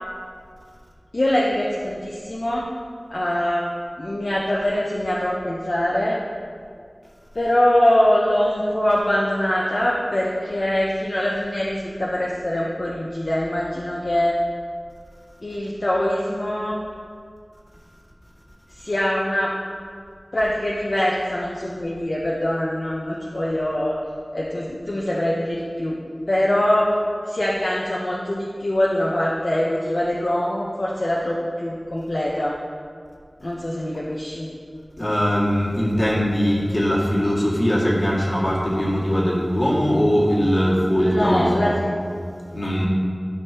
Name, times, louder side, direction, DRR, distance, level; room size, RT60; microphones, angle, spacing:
voice 1, 1.1-2.7 3.1-3.6 4.0-6.2 7.3-14.4 15.4-16.8 18.8-19.5 20.3-24.0 24.3-25.9 26.3-26.9 27.2-32.5 33.4-34.5 41.0-41.9, left 1 dB, 65° left, -5 dB, 0.9 m, -23 dB
voice 2, 35.0-41.8 42.5-42.8, equal, 50° left, -5 dB, 2.0 m, -20 dB
12.5 x 5.5 x 2.9 m, 2.1 s
wide cardioid pair, 40°, 0 cm